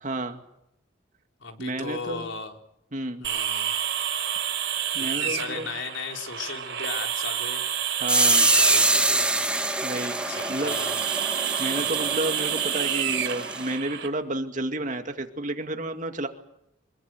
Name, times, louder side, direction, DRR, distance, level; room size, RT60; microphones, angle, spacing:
voice 1, 0.0-0.4 1.6-2.3 2.9-3.3 4.9-5.7 8.0-8.5 9.8-10.8 11.6-16.3, right 1 dB, 40° right, 6 dB, 2.3 m, -31 dB
voice 2, 1.4-2.6 3.2-3.7 5.0-7.6 8.2-9.5 10.3-11.0, left 4 dB, 75° left, 4 dB, 4.0 m, -36 dB
sound 1, 3.2-14.1, right 9 dB, 60° right, 4.9 m, -29 dB
sound 2, 8.1-13.7, right 2 dB, 5° right, 1.3 m, -25 dB
25.0 x 21.5 x 7.9 m, 0.79 s
head